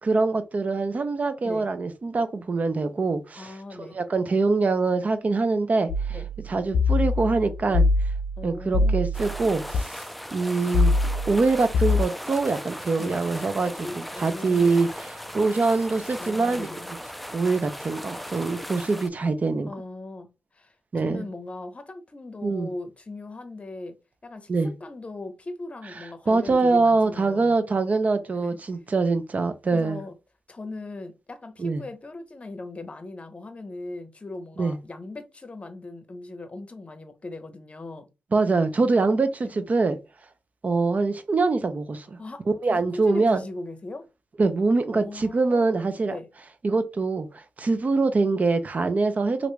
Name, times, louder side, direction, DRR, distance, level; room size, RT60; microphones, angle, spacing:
voice 1, 0.0-3.5 3.8-6.2 6.5-7.9 8.4-10.0 10.3-10.9 11.3-14.9 15.3-16.7 17.3-19.7 20.9-21.2 22.4-22.7 24.5-24.7 26.3-30.0 31.6-31.8 34.6-34.8 38.3-40.0 40.6-42.2 42.6-43.4 44.4-46.2 46.6-49.5, right 3 dB, 45° right, 0.6 m, -24 dB
voice 2, 3.4-4.0 6.1-6.3 8.4-9.1 13.0-13.2 13.8-14.8 16.2-16.9 19.7-24.0 24.2-27.6 28.3-28.6 29.7-30.2 30.5-38.1 39.4-39.6 42.2-44.1 44.9-46.3, left 2 dB, 35° left, 0.8 m, -39 dB
sound 1, 5.9-9.8 10.7-12.0, left 2 dB, 85° left, 0.4 m, -24 dB
sound 2, 9.1-19.1, equal, ahead, 0.3 m, -38 dB
2.9 x 2.6 x 3.3 m
cardioid pair, 60°, 4 cm